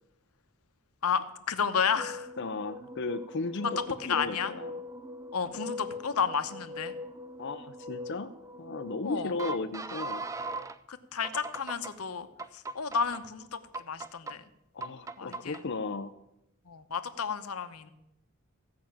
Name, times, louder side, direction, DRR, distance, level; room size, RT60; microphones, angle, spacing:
voice 1, 1.0-2.3 3.6-3.7 4.1-4.5 5.3-6.9 9.0-9.3 10.9-12.3 12.5-14.4 15.2-15.6 16.7-17.9, left 6 dB, 85° left, 10 dB, 0.9 m, -32 dB
sound 1, 1.7-10.8 11.2-11.9 12.4-13.2 13.7-14.3 14.8-15.6, right 1 dB, 15° right, 0.4 m, -40 dB
voice 2, 2.4-4.7 7.4-8.3 8.6-10.3 14.7-16.1, left 3 dB, 55° left, 7 dB, 0.5 m, -35 dB
15.5 x 5.7 x 8.7 m, 0.86 s
head